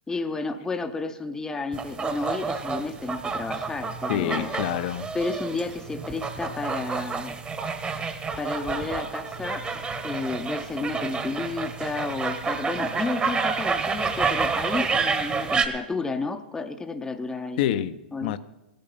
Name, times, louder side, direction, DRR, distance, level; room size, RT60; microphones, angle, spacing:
voice 1, 0.1-4.5 5.1-7.3 8.4-17.6 18.1-18.3, left 3 dB, 10° left, 0.7 m, -32 dB
sound 1, 1.7-15.7, right 5 dB, 20° right, 1.2 m, -29 dB
voice 2, 4.1-5.1 17.6-18.4, left 11 dB, 55° left, 0.7 m, -27 dB
16.5 x 8.9 x 5.5 m
hypercardioid pair, 120°, 6 cm